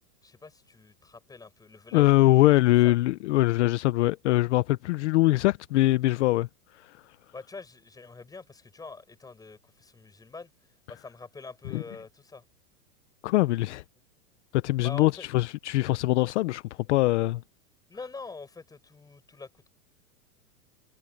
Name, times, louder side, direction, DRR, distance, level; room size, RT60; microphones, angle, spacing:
voice 1, 0.2-2.6 2.8-2.9 7.3-10.5 10.9-12.4 14.8-15.3 17.9-19.7, left 4 dB, 10° left, 7.7 m, -45 dB
voice 2, 1.9-6.5 6.7-7.0 11.7-11.8 13.2-13.8 14.5-16.6 16.9-17.4, left 18 dB, 50° left, 0.7 m, -23 dB
supercardioid pair, 160°, 45 cm